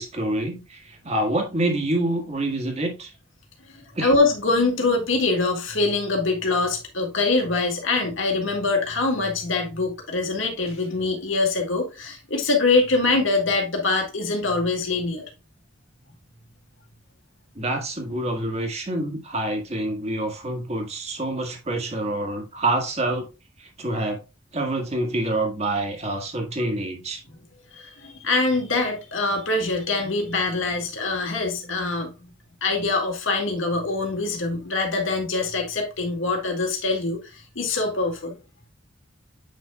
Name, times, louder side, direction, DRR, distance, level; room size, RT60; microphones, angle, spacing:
voice 1, 0.0-3.1 3.9-4.1 17.5-23.3 23.6-24.2 24.5-27.2, right 1 dB, 35° right, 1.7 m, -27 dB
voice 2, 3.7-15.3 27.7-32.3 32.6-38.3, left 3 dB, 75° left, 2.0 m, -24 dB
8.6 x 5.4 x 2.3 m
head